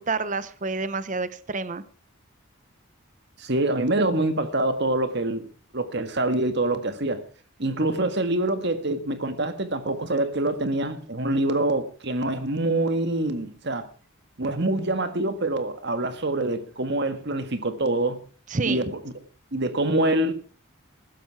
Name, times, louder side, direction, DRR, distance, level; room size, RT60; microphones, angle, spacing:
voice 1, 0.1-1.8 18.5-18.8, right 4 dB, 35° right, 0.8 m, -28 dB
voice 2, 3.4-5.5 5.7-7.2 7.6-13.8 14.4-18.2 18.6-18.9 19.5-20.3, right 2 dB, 50° right, 1.7 m, -25 dB
15.0 x 13.0 x 4.7 m
head